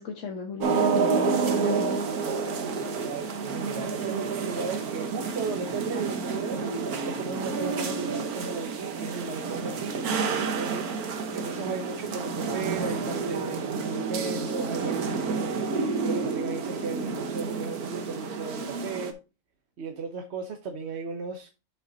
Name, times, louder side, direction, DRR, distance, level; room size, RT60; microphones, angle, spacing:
voice 1, 0.0-2.1, left 5 dB, 55° left, 2 dB, 1.3 m, -35 dB
sound 1, 0.6-19.1, right 4 dB, 75° right, 1.6 m, -29 dB
voice 2, 3.0-19.2 19.8-21.5, right 4 dB, 50° right, 4 dB, 1.1 m, -36 dB
7.4 x 5.9 x 3.9 m, 0.31 s
omnidirectional pair, 1.6 m